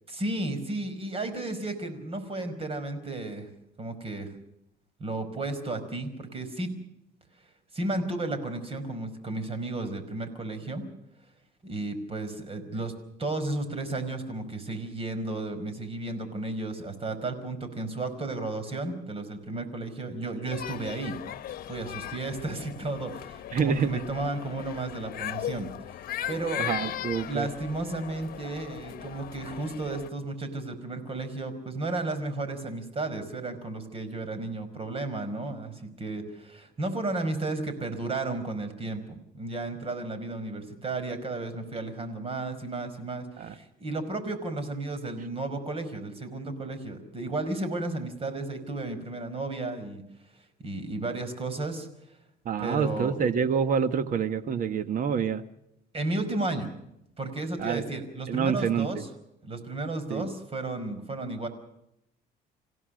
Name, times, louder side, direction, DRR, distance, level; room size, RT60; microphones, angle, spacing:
voice 1, 0.1-3.5 3.8-4.3 5.0-6.7 7.7-10.8 11.6-12.9 13.2-21.1 21.7-25.7 26.3-26.7 27.3-50.0 50.6-51.9 52.6-53.2 55.9-56.7 57.2-59.1 59.4-61.5, right 2 dB, 35° right, 10 dB, 5.0 m, -33 dB
sound 1, 20.5-30.1, left 11 dB, 60° left, 1.2 m, -38 dB
voice 2, 23.5-24.0 26.6-27.5 43.4-43.5 52.4-55.4 57.6-57.9 58.3-59.0 60.1-60.3, right 6 dB, 55° right, 12 dB, 1.4 m, -27 dB
27.5 x 16.5 x 6.4 m, 0.81 s
cardioid pair, 110°, 17 cm